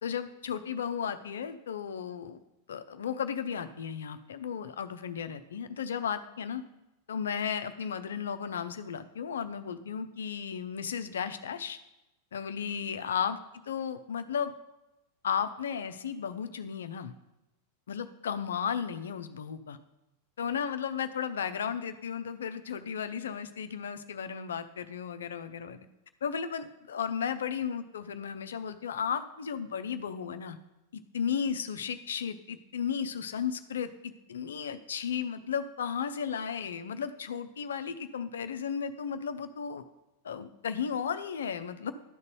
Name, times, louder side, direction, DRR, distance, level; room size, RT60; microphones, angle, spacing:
voice 1, 0.0-2.4 2.7-6.6 7.1-11.8 12.3-13.4 13.7-14.5 15.2-17.1 17.9-19.8 20.4-25.8 26.2-30.6 30.9-39.8 40.2-41.9, left 7 dB, 65° left, 10 dB, 0.6 m, -34 dB
11.5 x 4.1 x 6.8 m, 0.94 s
figure-of-eight pair, 90°, 0 cm